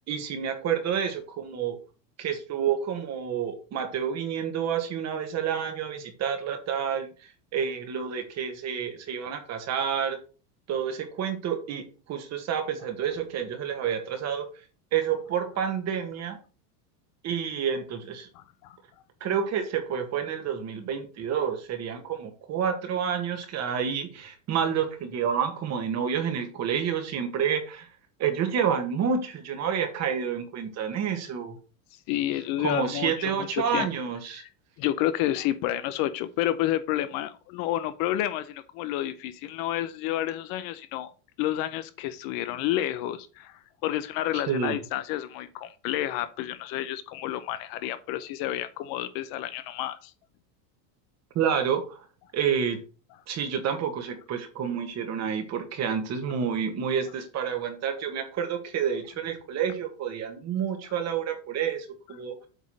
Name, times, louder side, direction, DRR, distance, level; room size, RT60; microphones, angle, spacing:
voice 1, 0.1-1.8 2.2-7.1 7.5-10.2 10.7-14.5 14.9-16.4 17.2-18.3 19.2-27.9 28.2-31.5 32.6-34.4 44.3-44.8 51.3-52.0 52.3-52.8 53.3-62.4, right 7 dB, 35° right, 1.7 m, -29 dB
voice 2, 18.3-18.8 32.1-33.9 34.8-41.1 41.4-50.1, left 13 dB, 45° left, 0.7 m, -30 dB
8.2 x 3.7 x 6.2 m
supercardioid pair, 150°, 48 cm